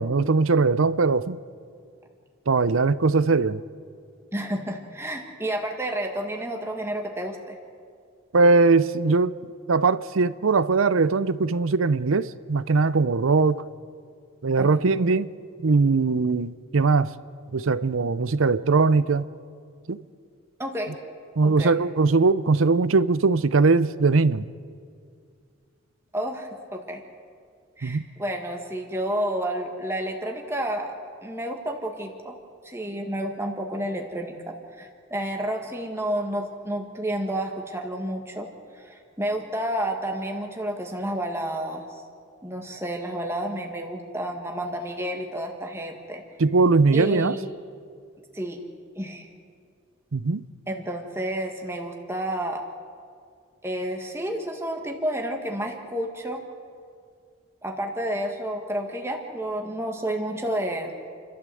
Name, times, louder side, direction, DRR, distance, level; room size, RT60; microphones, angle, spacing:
voice 1, 0.0-1.4 2.5-3.6 8.3-9.3 9.7-13.6 14.4-15.3 15.6-17.1 17.5-19.3 19.9-20.0 21.4-24.5 27.8-28.0 46.4-47.3 50.1-50.4, right 4 dB, 75° right, 0.6 m, -20 dB
voice 2, 4.3-7.6 14.6-14.7 20.6-20.9 21.4-21.8 26.1-27.0 27.8-30.9 31.2-32.3 32.6-38.5 38.7-42.0 42.4-46.2 46.9-47.5 48.3-48.6 48.9-49.3 50.7-52.6 53.6-56.4 57.6-60.9, right 1 dB, 10° right, 1.6 m, -30 dB
29.5 x 13.0 x 7.7 m
head